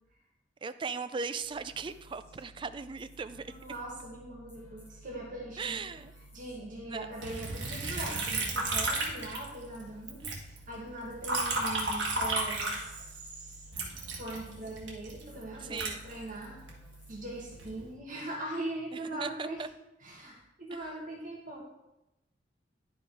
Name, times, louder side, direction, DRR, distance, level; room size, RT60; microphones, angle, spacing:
voice 1, 0.6-3.5 5.6-6.1 6.8-7.1 10.3-10.4 15.6-16.0 18.9-19.7 20.7-20.8, right 5 dB, 25° right, 12 dB, 0.4 m, -38 dB
sound 1, 1.4-17.9, right 1 dB, 15° left, 2.3 m, -54 dB
voice 2, 3.5-5.9 6.3-10.2 10.7-13.6 14.1-16.6 17.1-19.6 20.0-21.6, right 1 dB, 50° right, -3 dB, 1.7 m, -41 dB
Liquid, 7.2-9.8 10.1-13.3 13.7-16.7 17.3-17.8, right 2 dB, 75° right, 1.7 m, -33 dB
10.5 x 5.2 x 4.8 m, 0.90 s
head